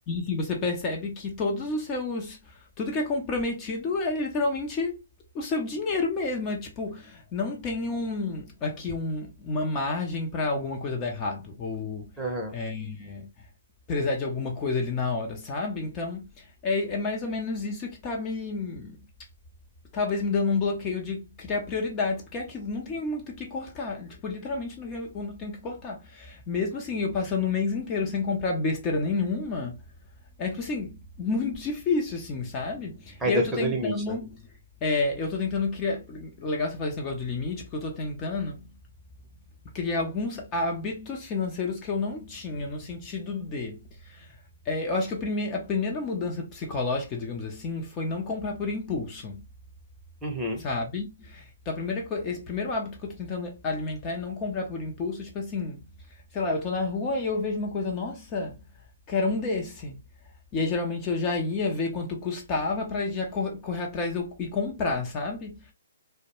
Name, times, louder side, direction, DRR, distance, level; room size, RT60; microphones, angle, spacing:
voice 1, 0.1-5.0 5.3-12.1 12.5-13.3 13.9-19.0 19.9-29.8 30.4-34.4 34.8-38.7 39.7-44.3 44.6-49.4 50.6-55.8 56.3-58.6 59.1-60.0 60.5-65.7, left 3 dB, 25° left, 0.6 m, -30 dB
voice 2, 12.2-12.5 33.2-34.2 50.2-50.6, right 1 dB, 10° right, 0.7 m, -28 dB
2.2 x 2.1 x 2.9 m
hypercardioid pair, 140°, 0 cm